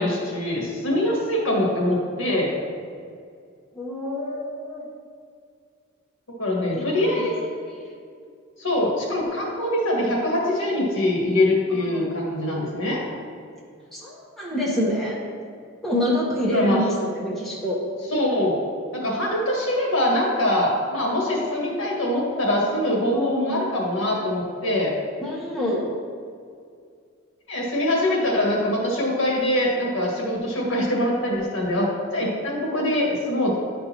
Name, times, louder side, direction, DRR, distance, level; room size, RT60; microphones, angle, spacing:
voice 1, 0.0-2.5 6.3-7.3 8.6-13.0 16.5-16.9 18.1-18.6 18.9-25.0 27.5-33.6, left 1 dB, 70° left, -3 dB, 1.7 m, -23 dB
voice 2, 3.7-4.9 6.7-6.8 7.2-7.5 7.8-8.0 11.7-12.2 13.9-15.2 15.8-17.8 21.2-21.7 23.1-23.6 25.2-25.9, left 1 dB, ahead, -6 dB, 1.0 m, -27 dB
10.0 x 5.2 x 2.9 m, 2.2 s
head